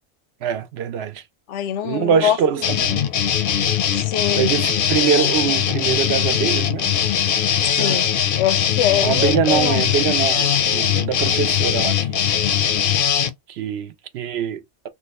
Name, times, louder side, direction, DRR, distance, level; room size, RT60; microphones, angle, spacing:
voice 1, 0.4-1.2 1.8-3.0 4.3-6.9 7.7-8.0 9.0-12.2 13.5-14.9, right 8 dB, 70° right, 0.8 m, -23 dB
voice 2, 1.5-2.4 3.9-4.5 7.6-8.1 8.4-9.8, left 11 dB, 90° left, 0.9 m, -23 dB
sound 1, 2.6-13.3, left 9 dB, 60° left, 0.6 m, -20 dB
2.8 x 2.1 x 4.0 m
omnidirectional pair, 1.2 m